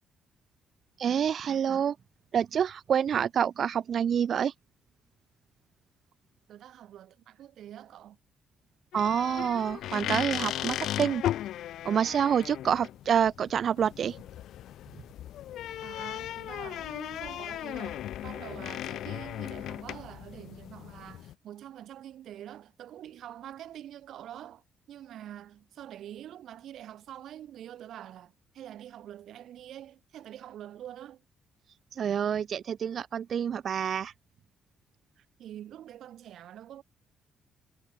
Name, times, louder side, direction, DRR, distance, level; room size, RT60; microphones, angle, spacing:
voice 1, 1.0-2.0 2.3-4.5 8.9-11.2 11.8-14.2 32.0-34.1, right 8 dB, 55° right, 0.3 m, -27 dB
voice 2, 6.5-8.2 15.8-31.2 35.2-36.8, right 11 dB, 75° right, 2.4 m, -46 dB
sound 1, 8.9-21.3, left 12 dB, 80° left, 1.1 m, -36 dB
cardioid pair, 90°, 0 cm